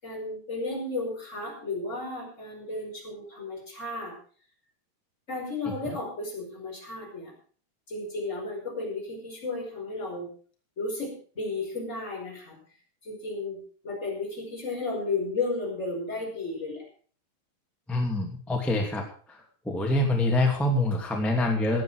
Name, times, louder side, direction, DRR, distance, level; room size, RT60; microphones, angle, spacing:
voice 1, 0.0-4.1 5.3-7.3 7.9-10.3 10.8-12.6 13.0-16.9, left 3 dB, 15° left, -1 dB, 5.2 m, -33 dB
voice 2, 17.9-19.4 19.6-21.8, left 1 dB, ahead, 0 dB, 1.6 m, -25 dB
16.5 x 10.5 x 4.9 m, 0.43 s
omnidirectional pair, 4.7 m